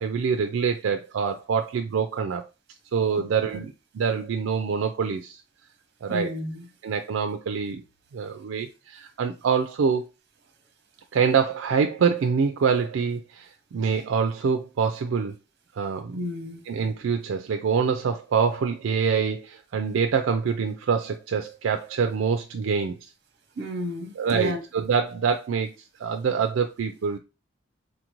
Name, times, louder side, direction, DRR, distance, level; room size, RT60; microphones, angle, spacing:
voice 1, 0.0-2.4 2.9-5.4 6.0-6.3 6.8-7.8 8.1-10.1 11.1-15.3 15.7-16.2 16.7-23.0 24.2-25.7 26.0-27.2, right 6 dB, 80° right, 0.4 m, -25 dB
voice 2, 6.1-6.6 16.1-16.6 23.6-24.6, equal, 60° right, 0.8 m, -32 dB
4.0 x 2.5 x 3.0 m
head